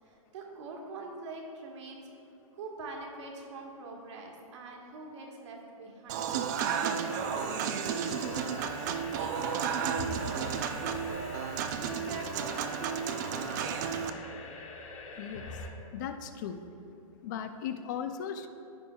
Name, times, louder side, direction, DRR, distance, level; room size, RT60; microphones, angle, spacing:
voice 1, 0.0-2.0 2.5-13.9, right 3 dB, 50° right, 0 dB, 1.6 m, -45 dB
Human voice / Acoustic guitar / Piano, 6.1-14.1, right 7 dB, 30° right, 0.4 m, -33 dB
sound 1, 6.7-15.7, left 3 dB, 60° left, 1.3 m, -44 dB
voice 2, 15.2-15.5 15.9-16.6 17.2-18.5, left 8 dB, 30° left, 8 dB, 0.4 m, -37 dB
14.5 x 5.0 x 2.3 m, 3.0 s
hypercardioid pair, 150°, 19 cm